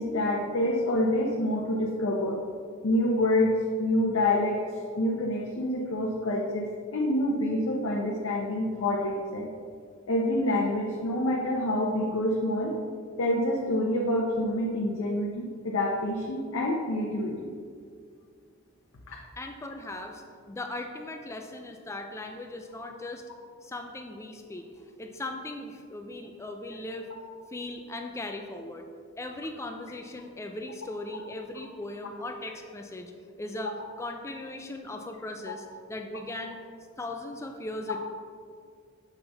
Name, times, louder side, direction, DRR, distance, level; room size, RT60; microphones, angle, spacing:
voice 1, 0.0-2.4 2.8-9.5 10.1-12.7 13.2-17.5 19.1-19.2 35.5-35.6, left 1 dB, 70° left, -2 dB, 0.7 m, -27 dB
voice 2, 19.4-23.2 23.6-24.7 25.0-27.1 27.5-28.8 29.2-33.1 33.4-33.7 34.0-36.6 37.0-38.0, left 2 dB, 15° left, 4 dB, 0.3 m, -38 dB
7.1 x 5.4 x 3.4 m, 2.1 s
head